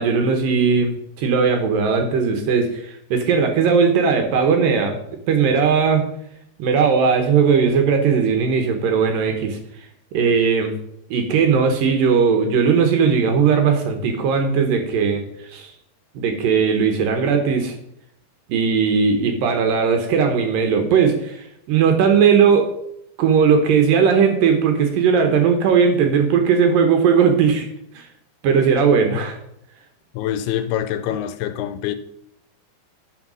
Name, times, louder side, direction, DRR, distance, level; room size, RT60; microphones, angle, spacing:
voice 1, 0.0-5.0 5.3-6.0 6.6-9.6 10.1-10.7 11.1-15.2 15.5-15.7 16.2-17.7 18.5-22.7 23.2-27.7 28.0-28.1 28.4-29.4, right 6 dB, 70° right, 2.4 m, -18 dB
voice 2, 30.1-31.9, left 11 dB, 80° left, 2.5 m, -25 dB
9.4 x 5.8 x 6.2 m
omnidirectional pair, 4.7 m